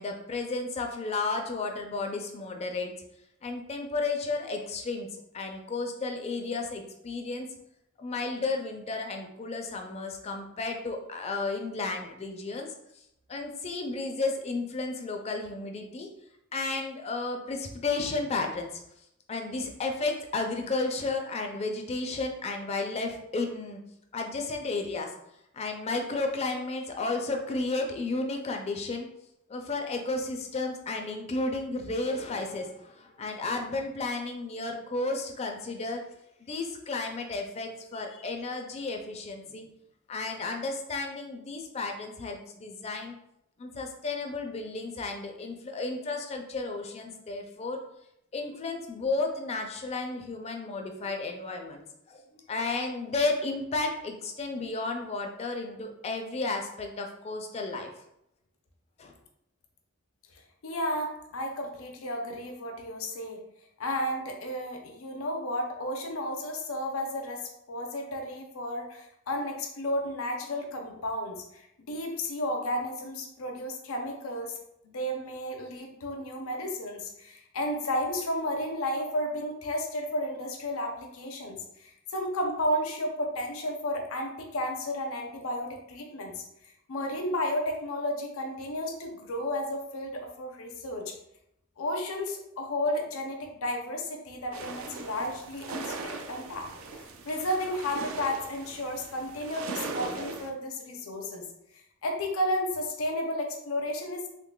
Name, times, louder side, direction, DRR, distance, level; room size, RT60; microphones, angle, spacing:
voice 1, 0.0-3.0 3.4-7.5 8.0-12.7 13.3-16.1 16.5-18.8 19.3-25.1 25.5-29.1 29.5-36.0 36.4-39.6 40.1-43.2 43.6-47.8 48.3-51.8 52.1-57.9 59.0-59.1, left 3 dB, 30° left, 3 dB, 0.4 m, -33 dB
voice 2, 60.6-63.4 63.8-74.5 74.8-86.4 86.9-91.2 91.8-96.7 96.9-101.5 101.7-104.3, left 1 dB, 80° left, 2 dB, 0.6 m, -33 dB
sound 1, 94.5-100.5, right 3 dB, 70° right, 0.4 m, -39 dB
3.7 x 3.2 x 2.2 m, 0.79 s
head